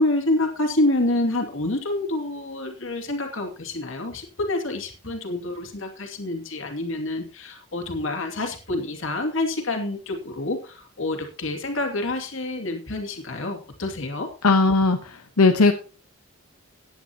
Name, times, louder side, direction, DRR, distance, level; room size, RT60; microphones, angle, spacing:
voice 1, 0.0-14.3, left 2 dB, 60° left, 3 dB, 2.6 m, -27 dB
voice 2, 14.4-15.7, left 3 dB, 90° left, 5 dB, 1.0 m, -18 dB
16.0 x 10.0 x 2.9 m, 0.35 s
head